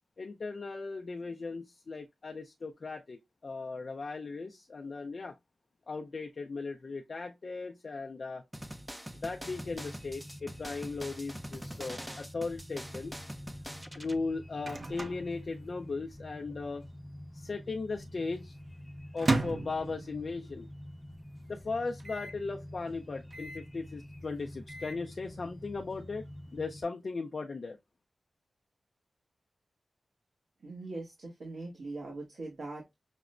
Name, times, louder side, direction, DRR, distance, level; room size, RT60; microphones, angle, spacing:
voice 1, 0.2-5.3 5.9-8.4 9.2-13.2 14.0-16.9 17.3-18.6 19.1-20.7 21.5-26.2 26.5-27.8, left 3 dB, 55° left, 0.4 m, -37 dB
sound 1, 8.5-14.2, equal, 5° right, 0.4 m, -44 dB
sound 2, 9.4-26.8, left 1 dB, 20° left, 0.8 m, -48 dB
Microwave oven, 14.0-16.2 16.5-16.6 16.8-17.4 17.8-20.6 21.0-21.1 21.3-21.4 22.0-22.4 23.3-23.7 24.4-25.1, right 2 dB, 50° right, 0.6 m, -36 dB
voice 2, 30.6-32.9, right 2 dB, 75° right, 1.3 m, -41 dB
5.9 x 2.1 x 2.4 m
wide cardioid pair, 95°, 0 cm